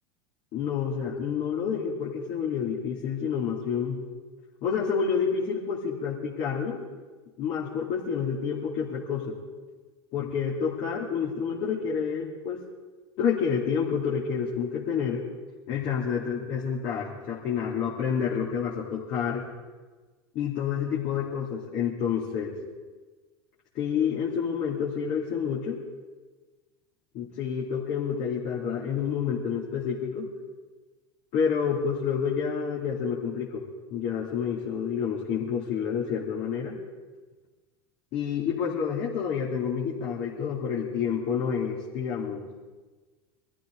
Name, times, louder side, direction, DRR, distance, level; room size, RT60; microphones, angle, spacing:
voice 1, 0.5-4.0 4.6-6.8 7.4-9.4 10.1-12.6 13.2-15.2 15.7-19.4 20.3-22.5 23.7-25.8 27.1-30.3 31.3-33.6 33.9-36.8 38.1-42.5, left 7 dB, 50° left, -5 dB, 3.0 m, -29 dB
23.5 x 14.0 x 3.9 m, 1.3 s
hypercardioid pair, 85°, 14 cm